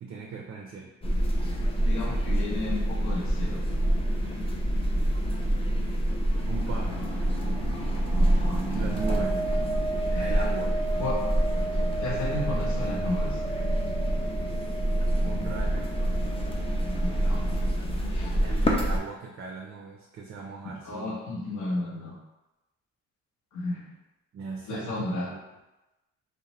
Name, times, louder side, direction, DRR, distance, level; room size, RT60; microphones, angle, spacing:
voice 1, 0.0-0.9 6.5-7.1 8.7-9.4 10.2-10.7 15.2-15.9 18.4-21.3 24.3-25.4, right 4 dB, 45° right, 0 dB, 0.4 m, -38 dB
sound 1, 1.0-19.0, right 1 dB, 20° left, 0.4 m, -27 dB
voice 2, 1.8-3.6 8.2-8.6 10.1-10.4 11.0-11.2 12.0-13.4 17.0-17.4 18.0-18.4 20.8-22.2 23.5-23.8 24.7-25.3, left 2 dB, 75° left, -1 dB, 0.7 m, -33 dB
sound 2, 6.5-17.7, right 3 dB, 15° right, 0.7 m, -34 dB
2.5 x 2.1 x 2.9 m, 1.0 s
cardioid pair, 90°, 30 cm